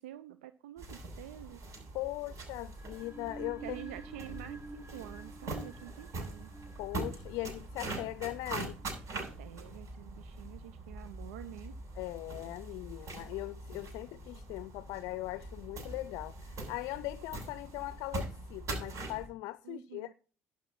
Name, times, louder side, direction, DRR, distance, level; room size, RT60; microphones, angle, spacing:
voice 1, 0.0-1.6 3.6-6.5 9.1-11.7 19.6-20.1, right 13 dB, 75° right, 0.6 m, -48 dB
sound 1, 0.8-19.3, right 2 dB, 50° right, 7.9 m, -43 dB
voice 2, 1.9-3.8 6.8-8.8 12.0-20.1, left 18 dB, 65° left, 0.5 m, -40 dB
sound 2, 2.7-9.6, right 2 dB, 30° right, 2.1 m, -50 dB
12.0 x 7.4 x 5.7 m
hypercardioid pair, 55°, 7 cm